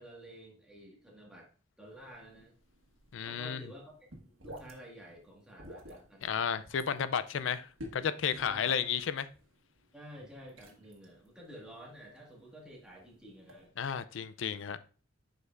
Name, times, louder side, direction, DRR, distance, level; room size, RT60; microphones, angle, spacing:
voice 1, 0.0-1.5 1.8-2.5 3.3-6.6 8.4-9.0 9.9-13.7, equal, 5° right, 1.7 m, -51 dB
sound 1, 1.9-13.7, left 1 dB, 90° right, 1.4 m, -53 dB
voice 2, 3.1-3.6 6.2-7.7 7.9-9.3 13.8-14.9, left 7 dB, 65° left, 0.4 m, -32 dB
7.9 x 5.2 x 2.5 m
head